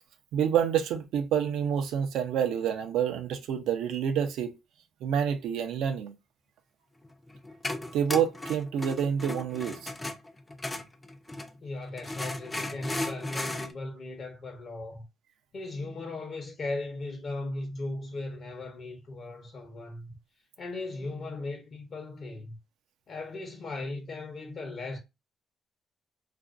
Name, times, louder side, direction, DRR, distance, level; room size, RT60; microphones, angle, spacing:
voice 1, 0.3-4.6 5.0-6.1 7.9-9.9, right 8 dB, 85° right, 0.4 m, -28 dB
sound 1, 7.0-11.6 12.0-13.7, left 1 dB, 15° left, 0.4 m, -36 dB
voice 2, 11.6-15.0 15.5-20.1 20.6-22.6 23.1-25.0, left 2 dB, 55° left, 0.7 m, -37 dB
2.5 x 2.1 x 2.3 m
cardioid pair, 90°, 0 cm